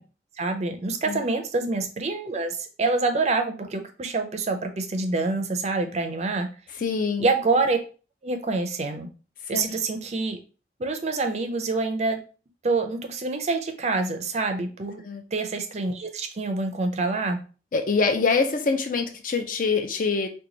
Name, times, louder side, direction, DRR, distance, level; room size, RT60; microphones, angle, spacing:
voice 1, 0.4-6.5 7.2-7.8 8.2-9.1 9.5-10.4 10.8-12.2 12.6-15.0 15.3-17.4, right 3 dB, 35° right, 5 dB, 0.5 m, -26 dB
voice 2, 6.8-7.3 9.5-9.7 15.0-15.2 17.7-20.3, left 4 dB, 45° left, 6 dB, 0.5 m, -24 dB
3.0 x 2.2 x 3.8 m, 0.36 s
head